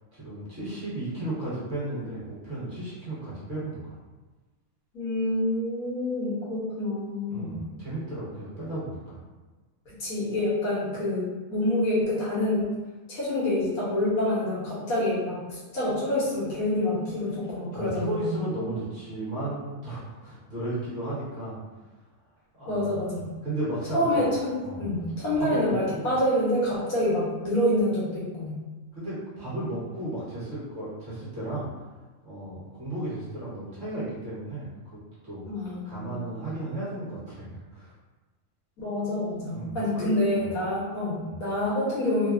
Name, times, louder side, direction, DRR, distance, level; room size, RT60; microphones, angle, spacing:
voice 1, 0.1-4.0 7.3-9.2 17.7-21.5 22.6-23.1 23.4-24.3 24.6-25.0 25.3-26.1 28.9-31.7 32.2-35.5 35.8-37.9 39.5-40.1 40.4-40.5 41.3-41.4, right 1 dB, 40° right, -9 dB, 1.2 m, -34 dB
voice 2, 4.9-7.6 9.9-12.7 13.1-18.3 22.7-23.2 23.9-28.6 35.5-36.1 38.8-42.3, left 1 dB, 85° left, -7 dB, 1.5 m, -27 dB
3.3 x 2.1 x 2.4 m, 1.3 s
omnidirectional pair, 1.5 m